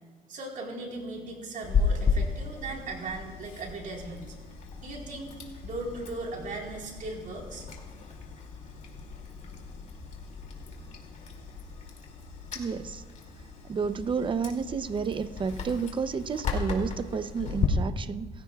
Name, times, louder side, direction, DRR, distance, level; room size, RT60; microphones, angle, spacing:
voice 1, 0.3-4.3 4.8-5.3 5.6-7.7, right 2 dB, 50° right, 0 dB, 4.1 m, -38 dB
Chewing mastication, 1.6-17.7, left 5 dB, 45° left, 2.6 m, -35 dB
voice 2, 12.5-13.0 13.6-18.3, right 5 dB, 30° right, 12 dB, 0.7 m, -31 dB
28.0 x 15.5 x 2.4 m, 1.4 s
cardioid pair, 110°, 17 cm